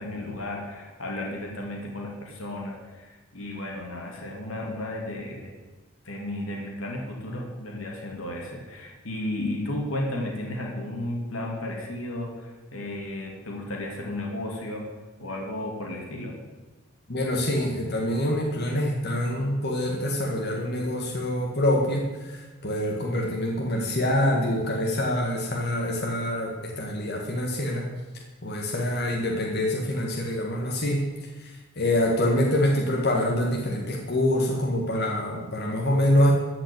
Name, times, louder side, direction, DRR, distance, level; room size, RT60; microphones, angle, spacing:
voice 1, 0.0-5.5 6.0-14.9 15.2-16.3, left 1 dB, 85° left, 0 dB, 2.7 m, -33 dB
voice 2, 17.1-27.9 28.4-31.0 31.4-36.3, left 1 dB, 50° left, -1 dB, 1.8 m, -25 dB
14.0 x 5.9 x 8.6 m, 1.2 s
head